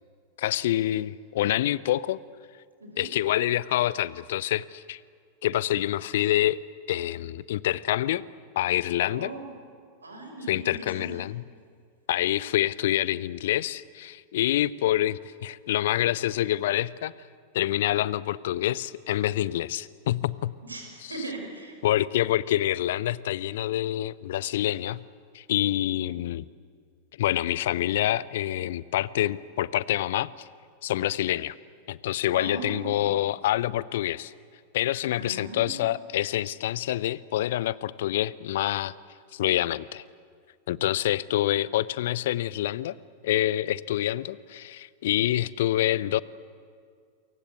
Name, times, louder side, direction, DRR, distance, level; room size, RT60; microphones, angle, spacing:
voice 1, 0.4-2.2 3.0-5.0 5.4-6.6 6.9-8.2 8.6-9.3 10.5-11.4 12.1-17.1 17.5-20.5 21.8-25.0 25.3-26.4 27.2-30.3 30.8-31.6 31.9-34.3 34.7-38.9 39.3-40.0 40.7-43.0 43.2-46.2, left 13 dB, 55° left, 21 dB, 0.6 m, -26 dB
voice 2, 9.0-9.5 10.0-11.1 20.6-21.7 32.3-33.0 35.2-35.8, right 2 dB, 75° right, 3 dB, 5.4 m, -38 dB
28.0 x 23.5 x 8.1 m, 2.1 s
figure-of-eight pair, 90°, 0 cm